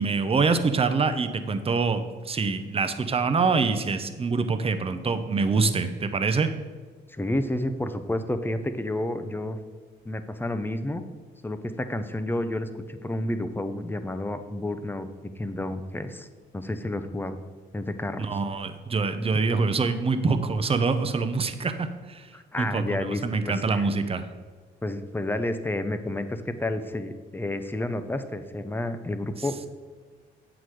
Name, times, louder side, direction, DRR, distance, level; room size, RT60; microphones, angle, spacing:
voice 1, 0.0-6.5 18.2-22.3 22.6-24.3, right 4 dB, 30° right, 9 dB, 0.7 m, -25 dB
voice 2, 7.1-9.6 10.0-11.0 11.4-16.3 16.5-17.4 17.7-18.3 22.3-23.9 24.8-29.7, left 1 dB, 10° left, 9 dB, 0.6 m, -30 dB
8.2 x 6.1 x 4.8 m, 1.5 s
cardioid pair, 90°, 20 cm